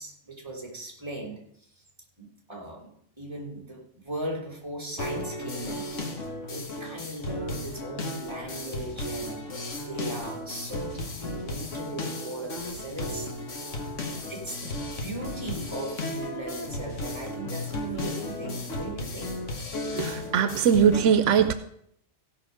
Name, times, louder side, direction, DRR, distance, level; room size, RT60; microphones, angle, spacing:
voice 1, 0.0-1.4 2.2-2.9 3.2-6.1 6.5-9.6 9.9-13.3 13.7-19.4, right 1 dB, 20° right, 0 dB, 2.5 m, -38 dB
sound 1, 5.0-21.0, left 2 dB, 80° left, 1.7 m, -35 dB
voice 2, 19.9-21.5, right 7 dB, 85° right, 11 dB, 1.0 m, -21 dB
16.0 x 5.6 x 5.1 m, 0.70 s
omnidirectional pair, 1.2 m